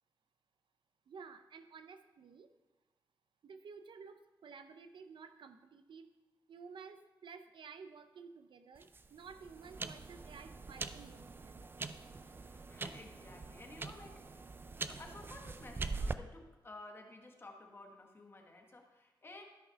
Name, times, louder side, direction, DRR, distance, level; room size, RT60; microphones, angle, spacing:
voice 1, 1.1-2.5 3.4-6.1 6.5-11.7, right 5 dB, 80° right, 9 dB, 0.7 m, -53 dB
sound 1, 8.8-16.1, right 3 dB, 25° right, 0.4 m, -43 dB
voice 2, 12.4-19.4, left 2 dB, 30° left, 2 dB, 1.3 m, -54 dB
12.5 x 5.6 x 5.7 m, 1.1 s
wide cardioid pair, 155°, 8 cm